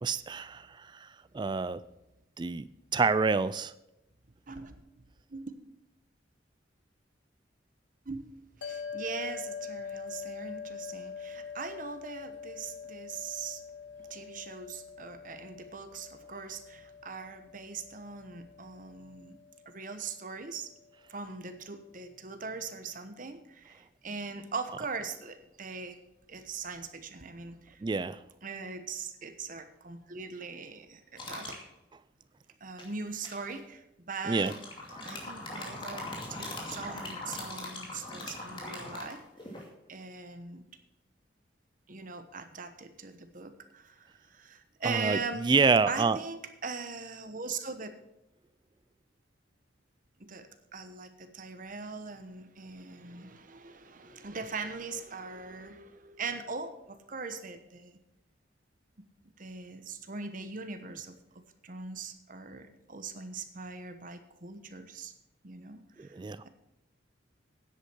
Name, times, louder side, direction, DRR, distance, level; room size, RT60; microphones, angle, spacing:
voice 1, 0.0-1.8 2.4-2.6 2.9-3.7 27.8-28.2 34.3-34.5 35.1-35.2 36.5-36.6 44.8-46.2 66.0-66.4, right 4 dB, 25° right, 16 dB, 0.3 m, -28 dB
voice 2, 4.5-5.0 5.3-5.5 8.0-8.3 8.6-13.6 14.0-19.4 19.6-20.7 21.1-26.0 26.3-27.8 28.4-31.6 32.6-34.6 35.0-39.6 39.9-40.6 41.9-45.5 45.9-47.9 50.2-58.0 59.2-65.1 65.4-66.2, right 4 dB, 45° right, 9 dB, 1.0 m, -41 dB
sound 1, 8.6-21.1, left 6 dB, 65° left, 1.1 m, -44 dB
sound 2, 31.2-31.6 32.8-33.5 34.3-39.7, left 2 dB, 25° left, 2.4 m, -41 dB
10.0 x 8.3 x 6.2 m, 0.89 s
head